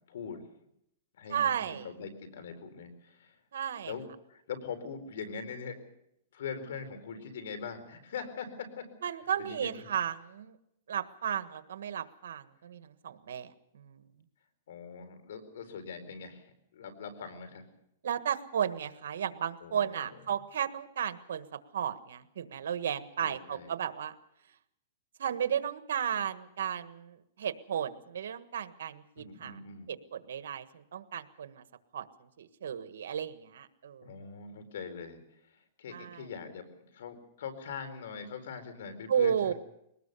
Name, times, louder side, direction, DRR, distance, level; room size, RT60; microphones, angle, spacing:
voice 1, 0.1-0.4 1.1-3.4 3.8-5.8 6.3-8.9 9.4-9.9 14.7-17.7 19.6-20.2 23.2-23.7 29.2-29.9 34.0-39.5, left 5 dB, 75° left, 8 dB, 4.4 m, -42 dB
voice 2, 1.3-1.9 3.5-3.9 9.0-10.6 10.9-14.0 18.0-24.1 25.2-29.6 29.9-31.6 31.9-32.1 32.4-34.1 35.9-36.2 39.1-39.5, right 8 dB, 80° right, 11 dB, 1.5 m, -34 dB
22.5 x 19.5 x 6.9 m, 0.80 s
hypercardioid pair, 150°, 0 cm